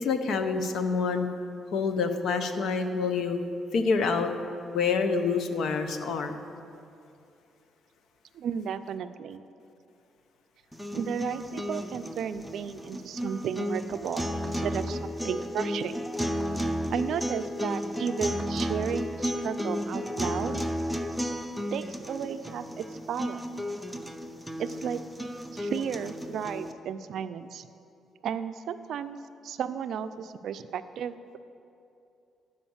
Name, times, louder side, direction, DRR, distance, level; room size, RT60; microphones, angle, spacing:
voice 1, 0.0-1.3 1.7-3.4 3.7-4.3 4.7-6.4, left 5 dB, 70° left, 8 dB, 0.8 m, -27 dB
voice 2, 8.3-9.4 10.9-16.1 16.9-20.6 21.7-23.5 24.6-25.0 25.5-27.7 28.2-31.4, right 8 dB, 70° right, 11 dB, 0.4 m, -34 dB
sound 1, 10.7-26.7, equal, ahead, 0.6 m, -33 dB
11.5 x 5.1 x 7.1 m, 2.7 s
cardioid pair, 90°, 0 cm